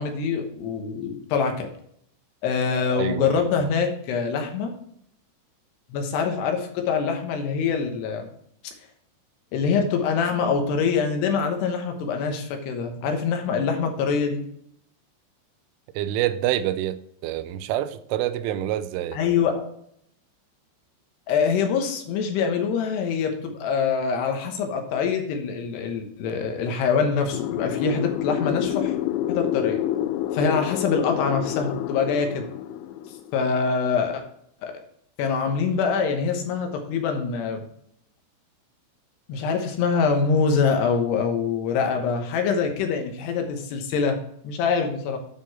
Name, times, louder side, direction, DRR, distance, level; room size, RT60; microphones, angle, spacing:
voice 1, 0.0-1.7 2.4-4.7 5.9-8.3 9.5-14.4 19.1-19.7 21.3-28.9 29.3-29.8 30.3-32.4 33.3-34.2 34.6-34.7 35.2-37.7 39.3-44.2 44.4-45.2, left 5 dB, 70° left, 2.9 m, -24 dB
voice 2, 3.0-3.7 16.0-19.2, right 12 dB, 85° right, 3.1 m, -27 dB
sound 1, 27.3-33.5, left 12 dB, 85° left, 2.5 m, -28 dB
9.5 x 6.1 x 4.3 m
omnidirectional pair, 5.7 m